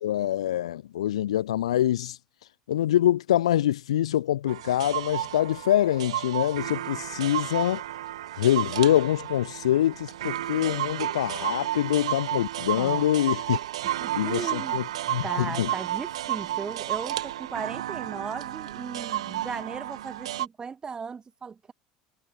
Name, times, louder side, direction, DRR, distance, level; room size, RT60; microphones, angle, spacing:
voice 1, 0.0-2.2 2.7-7.8 8.4-13.6 14.1-14.8 15.1-15.7, left 12 dB, 70° left, 0.4 m, -25 dB
sound 1, 4.5-20.5, right 13 dB, 70° right, 1.1 m, -32 dB
voice 2, 12.8-13.2 13.8-14.8 15.2-21.7, right 5 dB, 25° right, 1.7 m, -37 dB
figure-of-eight pair, 70°, 3 cm